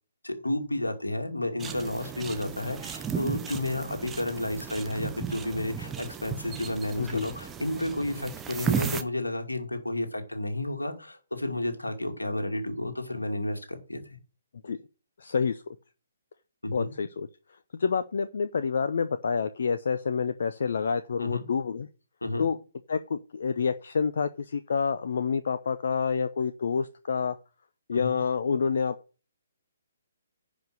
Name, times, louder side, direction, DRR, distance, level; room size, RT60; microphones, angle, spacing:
voice 1, 0.2-14.0 16.6-16.9 21.2-21.4 22.2-22.5 27.9-28.2, left 1 dB, 80° left, 5 dB, 2.4 m, -31 dB
sound 1, 1.6-9.0, right 7 dB, 10° right, 0.9 m, -35 dB
voice 2, 7.0-7.3 14.6-14.8 15.2-15.6 16.7-17.3 17.7-21.9 22.4-22.6 22.9-27.4 27.9-28.9, left 5 dB, 55° left, 11 dB, 0.6 m, -28 dB
10.5 x 5.1 x 6.4 m, 0.35 s
figure-of-eight pair, 130°, 0 cm